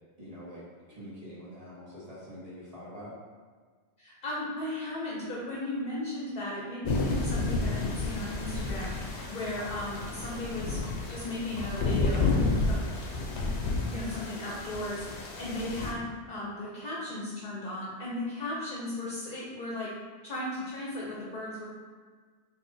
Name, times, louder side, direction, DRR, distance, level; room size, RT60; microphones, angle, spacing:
voice 1, 0.2-3.1, equal, 35° right, -8 dB, 1.3 m, -45 dB
voice 2, 4.0-10.8 11.1-12.3 12.7-12.8 13.9-19.9 20.2-21.7, left 1 dB, 50° left, -5 dB, 0.8 m, -36 dB
sound 1, 6.8-15.9, left 3 dB, 85° left, 1.0 m, -31 dB
4.5 x 2.7 x 2.6 m, 1.5 s
omnidirectional pair, 1.1 m